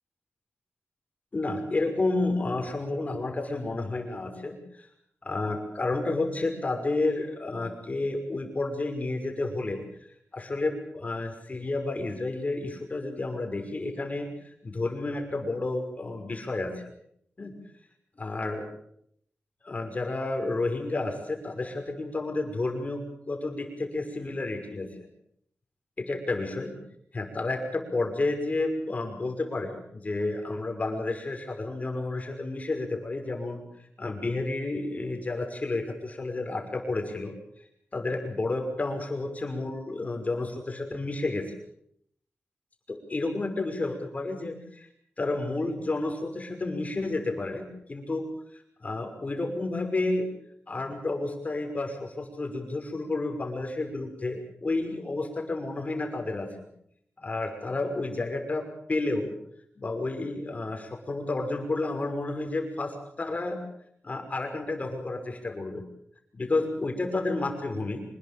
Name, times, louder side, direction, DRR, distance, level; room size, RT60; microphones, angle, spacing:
voice 1, 1.3-4.9 5.2-9.8 10.3-14.3 14.6-16.7 17.4-17.5 18.2-18.7 19.6-24.9 26.0-26.7 27.1-33.6 34.0-37.3 37.9-41.5 42.9-44.9 45.2-48.2 48.5-50.3 50.7-56.5 57.2-59.3 59.8-63.6 64.0-65.8 66.3-68.0, left 2 dB, 35° left, 5 dB, 5.8 m, -31 dB
25.5 x 21.0 x 7.0 m, 0.70 s
wide cardioid pair, 105°, 4 cm